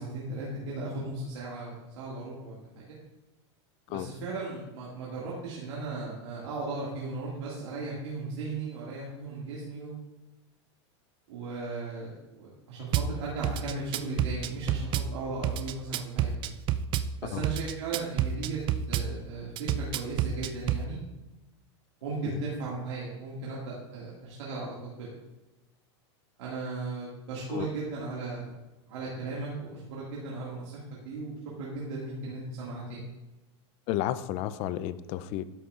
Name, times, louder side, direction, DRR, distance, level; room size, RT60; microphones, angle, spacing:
voice 1, 0.0-3.0 3.9-9.9 11.3-16.3 17.2-18.6 18.9-21.0 22.0-25.1 26.4-28.5 28.9-30.8 31.0-33.0, right 3 dB, 75° right, -6 dB, 2.1 m, -36 dB
Drum kit / Bass drum, 12.9-13.1 13.4-15.1 15.4-17.1 17.4-19.1 19.6-20.8, right 10 dB, 35° right, 0.4 m, -28 dB
voice 2, 33.9-35.5, left 13 dB, 45° left, 15 dB, 0.4 m, -32 dB
12.5 x 6.0 x 2.5 m, 1.0 s
supercardioid pair, 125°, 15 cm